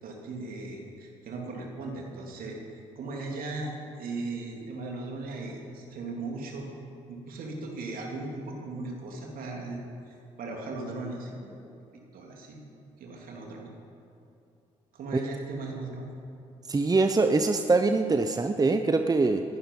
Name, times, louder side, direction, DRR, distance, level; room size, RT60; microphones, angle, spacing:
voice 1, 0.0-2.6 2.9-6.7 7.1-9.8 10.1-11.7 12.1-12.6 13.0-13.7 14.9-16.1, right 3 dB, 65° right, 0 dB, 3.1 m, -37 dB
voice 2, 16.7-19.4, right 3 dB, 25° right, 7 dB, 0.9 m, -23 dB
18.5 x 11.5 x 5.5 m, 2.7 s
hypercardioid pair, 50°, 16 cm